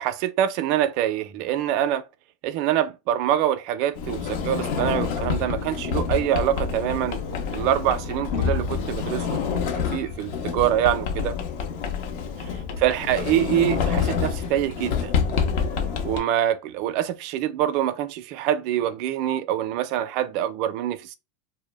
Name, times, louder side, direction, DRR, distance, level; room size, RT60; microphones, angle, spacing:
voice 1, 0.0-2.0 2.4-7.2 7.5-11.4 12.8-15.2 16.0-21.1, right 11 dB, 55° right, 0.3 m, -25 dB
Sliding door, 3.9-16.2, left 6 dB, 60° left, 0.6 m, -27 dB
2.1 x 2.0 x 3.2 m
supercardioid pair, 125°, 0 cm